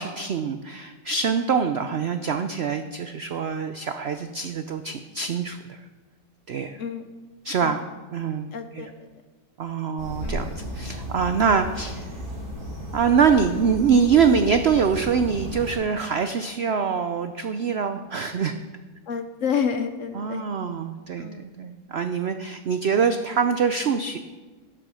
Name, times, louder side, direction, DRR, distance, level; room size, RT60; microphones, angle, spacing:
voice 1, 0.0-5.8 6.5-6.8 7.4-7.8 8.1-8.5 8.7-8.9 9.6-12.1 12.9-18.6 20.1-24.2, right 6 dB, 85° right, 8 dB, 0.5 m, -24 dB
voice 2, 8.5-9.1 10.2-10.4 19.1-20.4 21.2-21.5, left 7 dB, 60° left, 9 dB, 0.9 m, -29 dB
sound 1, 10.0-15.8, equal, 45° right, 2.5 m, -34 dB
12.0 x 7.9 x 6.3 m, 1.3 s
omnidirectional pair, 1.9 m